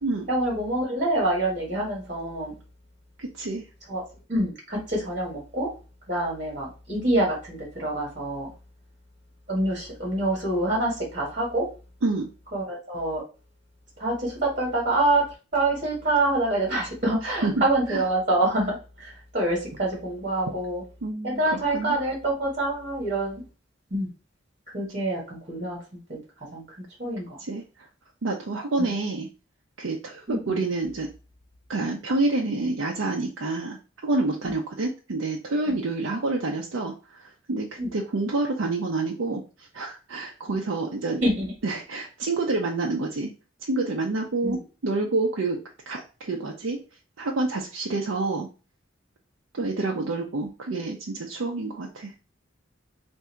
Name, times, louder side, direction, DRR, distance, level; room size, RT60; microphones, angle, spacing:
voice 1, 0.3-2.5 3.9-4.0 4.3-5.7 6.1-8.5 9.5-11.7 12.5-13.2 14.0-15.3 15.5-20.8 21.2-23.4 23.9-24.1 24.7-25.8 26.1-26.2 26.5-26.6 27.0-27.3 28.8-28.9 30.3-30.6 34.4-34.5 37.8-37.9 40.5-40.6 41.2-41.5 44.4-44.6 49.6-49.7, right 1 dB, 40° right, -3 dB, 1.7 m, -26 dB
voice 2, 3.2-3.7 12.0-12.3 17.2-18.0 21.0-22.0 27.4-27.9 28.2-29.3 29.8-31.1 31.7-33.8 34.0-41.2 41.6-43.3 43.6-45.6 45.9-46.8 47.2-48.5 49.5-52.1, right 3 dB, 85° right, 0 dB, 0.6 m, -28 dB
3.6 x 2.6 x 4.4 m, 0.33 s
head